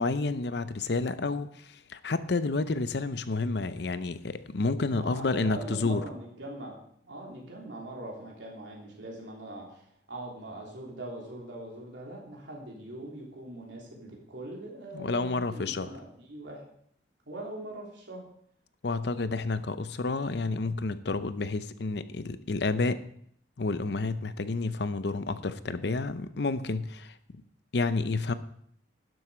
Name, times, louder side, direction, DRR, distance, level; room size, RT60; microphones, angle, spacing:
voice 1, 0.0-6.0 14.9-15.9 18.8-23.0 23.6-27.2 27.7-28.3, left 3 dB, 60° left, 13 dB, 0.6 m, -30 dB
voice 2, 4.9-6.8 7.1-16.6 17.3-18.2, right 1 dB, 70° right, -2 dB, 3.4 m, -42 dB
12.0 x 7.7 x 5.0 m, 0.67 s
head